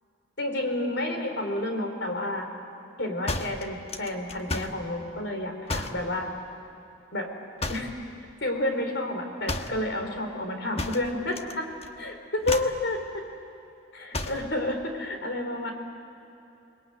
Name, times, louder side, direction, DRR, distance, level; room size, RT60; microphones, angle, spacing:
voice 1, 0.4-2.5 3.0-6.3 7.1-7.3 7.7-7.9 8.4-11.7 12.0-13.0 13.9-15.7, left 1 dB, 65° left, 4 dB, 4.2 m, -30 dB
sound 1, 3.3-4.8 5.7-6.1 7.6-8.0 9.5-9.8 10.8-11.5 11.8-12.1 12.4-12.8 14.1-14.5, left 2 dB, 30° left, 1.2 m, -32 dB
29.5 x 21.5 x 9.2 m, 2.9 s
head